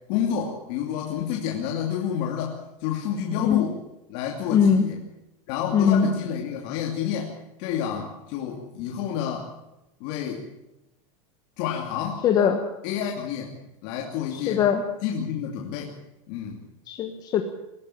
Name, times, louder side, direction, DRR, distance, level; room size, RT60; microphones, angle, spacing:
voice 1, 0.1-3.8 4.1-5.0 5.5-7.3 7.6-9.5 10.0-10.4 11.6-12.2 12.8-13.5 13.8-14.6 15.0-15.9 16.3-16.6, left 8 dB, 45° left, 0 dB, 2.7 m, -29 dB
voice 2, 4.5-4.8 5.7-6.1 12.2-12.6 14.5-14.8 16.9-17.4, left 7 dB, 25° left, 6 dB, 1.2 m, -20 dB
21.0 x 14.0 x 8.8 m, 0.91 s
supercardioid pair, 170°, 17 cm